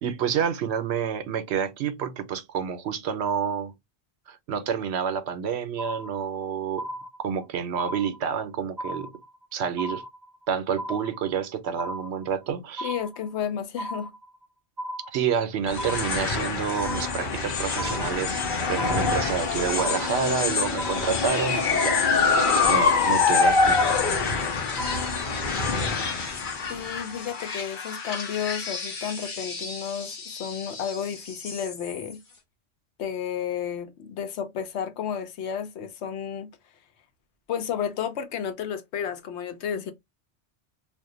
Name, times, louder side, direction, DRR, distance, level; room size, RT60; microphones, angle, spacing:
voice 1, 0.0-3.7 4.3-6.9 7.2-9.1 9.5-10.0 10.5-12.9 15.1-18.4 18.7-22.1 22.7-23.8, right 7 dB, 75° right, 0.9 m, -28 dB
sound 1, 5.8-6.4 6.8-7.4 7.8-8.4 8.8-9.4 9.8-10.4 10.8-11.4 11.8-12.4 12.8-13.4 13.8-14.4 14.8-15.4 15.8-16.4 16.8-17.4 17.8-18.4 18.8-19.4 19.8-20.4 20.8-21.4 21.8-22.4 22.8-23.4 23.8-24.4 24.8-25.4, equal, 45° right, 0.8 m, -36 dB
voice 2, 12.8-14.1 26.7-32.2 33.0-36.5 37.5-39.9, left 8 dB, 80° left, 0.9 m, -32 dB
sound 2, 15.7-32.1, left 4 dB, 50° left, 0.9 m, -26 dB
2.4 x 2.2 x 3.7 m
omnidirectional pair, 1.1 m